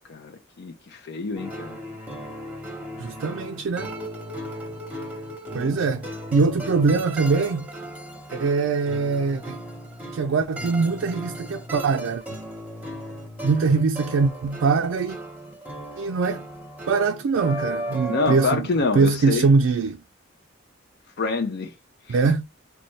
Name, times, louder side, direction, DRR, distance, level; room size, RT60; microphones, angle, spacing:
voice 1, 0.1-1.8 18.1-19.5 21.2-21.7 22.1-22.2, left 4 dB, 55° left, 0.5 m, -27 dB
sound 1, 1.3-18.5, right 1 dB, 10° right, 0.9 m, -36 dB
voice 2, 3.0-3.9 5.5-6.1 6.3-7.7 8.3-9.6 10.1-12.2 13.4-15.2 16.0-16.5 16.9-18.7 18.9-20.0 22.1-22.4, right 4 dB, 80° right, 0.4 m, -22 dB
4.0 x 2.3 x 3.1 m
head